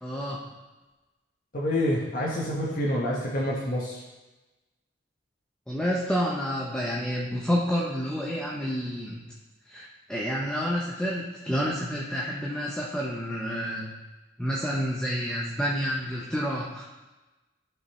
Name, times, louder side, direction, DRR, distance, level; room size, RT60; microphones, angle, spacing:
voice 1, 0.0-0.4 5.7-9.2 9.7-13.9 14.4-16.8, equal, 5° left, -4 dB, 0.7 m, -29 dB
voice 2, 1.5-4.0, left 1 dB, 50° left, -6 dB, 1.3 m, -27 dB
11.5 x 5.4 x 3.1 m, 1.1 s
head